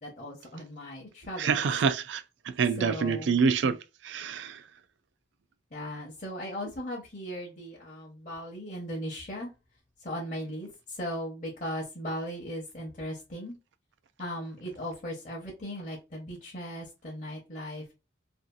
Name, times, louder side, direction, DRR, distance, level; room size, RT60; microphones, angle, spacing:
voice 1, 0.0-1.6 2.8-3.4 5.7-9.5 10.0-13.6 14.2-17.9, equal, 40° left, 0.7 m, -38 dB
voice 2, 1.4-3.8 4.0-4.6, right 5 dB, 75° right, 0.3 m, -27 dB
2.6 x 2.4 x 2.2 m
head